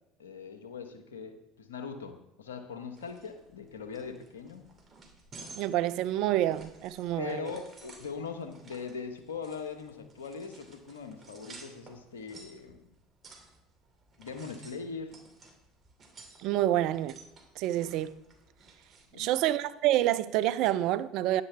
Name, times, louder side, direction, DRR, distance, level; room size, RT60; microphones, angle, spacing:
voice 1, 0.2-4.7 7.2-12.8 14.2-15.1 19.1-19.3, left 5 dB, 90° left, 1.0 m, -41 dB
sound 1, 2.9-19.0, right 3 dB, 40° right, 2.6 m, -54 dB
voice 2, 5.6-7.5 16.4-17.2 17.6-18.1 19.2-21.4, right 13 dB, 65° right, 0.5 m, -28 dB
10.0 x 9.6 x 3.4 m
hypercardioid pair, 75°, 0 cm